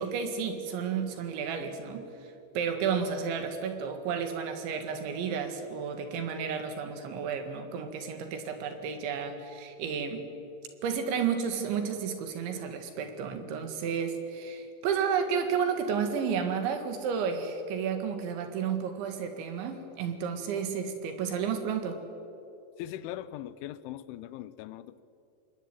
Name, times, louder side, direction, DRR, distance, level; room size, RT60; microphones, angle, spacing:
voice 1, 0.0-2.0 2.6-10.3 10.8-22.0, right 6 dB, 75° right, 4.3 m, -32 dB
voice 2, 22.8-25.0, left 13 dB, 85° left, 3.3 m, -40 dB
26.5 x 21.0 x 9.1 m
omnidirectional pair, 5.4 m